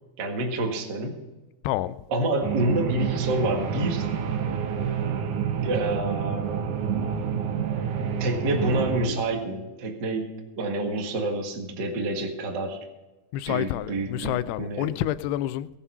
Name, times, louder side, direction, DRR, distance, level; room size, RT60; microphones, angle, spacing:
voice 1, 0.2-1.2 2.1-4.2 5.5-6.4 8.0-12.8 13.4-14.9, right 1 dB, 45° right, 1.5 m, -28 dB
voice 2, 1.6-2.0 13.3-15.7, left 13 dB, 85° left, 2.6 m, -28 dB
sound 1, 2.4-9.1, right 7 dB, 70° right, 1.9 m, -28 dB
19.5 x 7.3 x 5.6 m
omnidirectional pair, 4.6 m